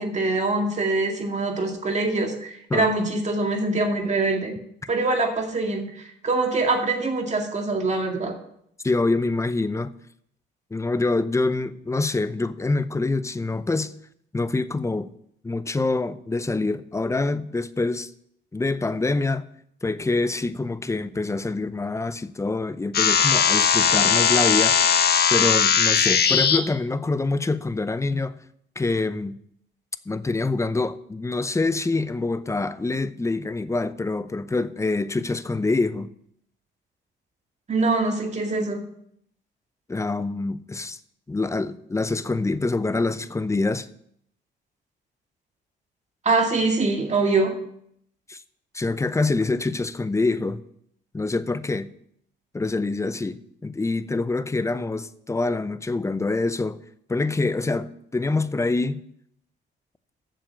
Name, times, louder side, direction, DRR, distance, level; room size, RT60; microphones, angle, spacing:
voice 1, 0.0-4.5 4.9-8.3 37.7-38.8 46.2-47.6, right 3 dB, 35° right, 2.1 m, -24 dB
voice 2, 8.8-9.9 10.7-13.9 14.3-15.1 15.4-18.1 18.5-19.4 19.8-25.0 25.3-28.3 28.8-29.4 30.1-36.1 39.9-41.0 41.3-43.9 48.3-48.4 48.7-50.6 51.1-51.9 52.5-56.8 57.1-59.0, left 3 dB, 15° left, 0.6 m, -25 dB
sound 1, 22.9-26.6, left 7 dB, 55° left, 1.1 m, -19 dB
7.6 x 7.1 x 7.3 m
cardioid pair, 90°, 20 cm